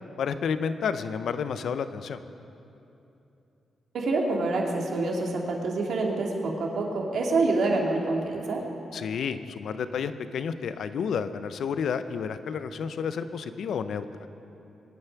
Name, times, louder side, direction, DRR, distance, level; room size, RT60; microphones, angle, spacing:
voice 1, 0.2-2.2 8.9-14.1, left 6 dB, 75° left, 11 dB, 0.7 m, -30 dB
voice 2, 3.9-8.6, right 3 dB, 75° right, 0 dB, 2.4 m, -26 dB
22.5 x 9.7 x 5.9 m, 2.8 s
supercardioid pair, 50°, 0 cm